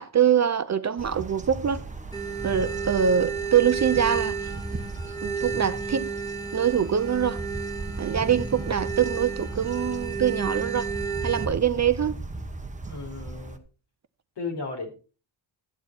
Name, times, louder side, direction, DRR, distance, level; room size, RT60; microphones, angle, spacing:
voice 1, 0.0-1.8 2.4-4.5 5.2-6.1 6.5-7.4 8.0-10.9 11.2-12.2, right 8 dB, 35° right, 0.5 m, -24 dB
sound 1, 1.0-13.6, right 2 dB, 15° right, 1.2 m, -37 dB
sound 2, 2.1-11.4, right 5 dB, 10° left, 2.6 m, -32 dB
voice 2, 12.8-13.6 14.4-14.9, left 4 dB, 55° left, 4.1 m, -34 dB
13.0 x 9.4 x 4.3 m
wide cardioid pair, 160°, 48 cm